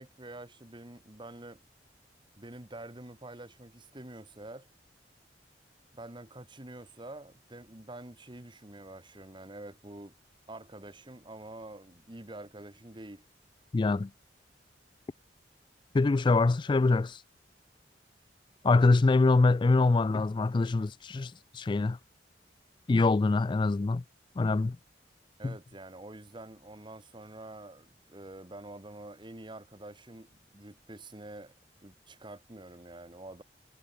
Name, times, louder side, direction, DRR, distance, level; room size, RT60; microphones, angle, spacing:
voice 1, 0.0-1.6 2.4-4.7 5.9-10.1 10.5-13.2 25.4-31.5 31.8-33.4, right 2 dB, 25° right, 1.8 m, -47 dB
voice 2, 13.7-14.1 15.9-17.2 18.6-22.0 22.9-24.0 24.4-24.7, left 3 dB, 25° left, 0.3 m, -24 dB
head